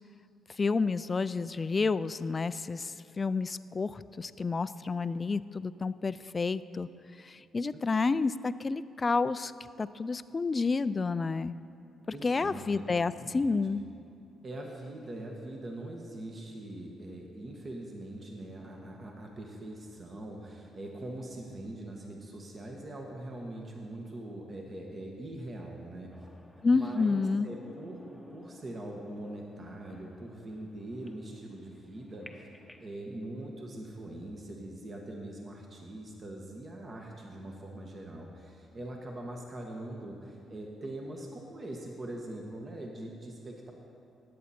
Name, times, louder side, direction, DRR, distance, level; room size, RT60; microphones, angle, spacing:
voice 1, 0.6-6.9 7.2-9.5 9.8-11.5 12.2-13.8 26.6-27.5, left 4 dB, 30° left, 15 dB, 0.3 m, -30 dB
voice 2, 12.1-12.8 13.2-13.5 14.4-26.3 26.7-32.5 32.8-43.7, right 1 dB, 40° right, 0 dB, 1.4 m, -42 dB
sound 1, 26.1-32.9, left 1 dB, ahead, 1.0 m, -56 dB
18.5 x 8.5 x 4.3 m, 2.7 s
cardioid pair, 90°, 0 cm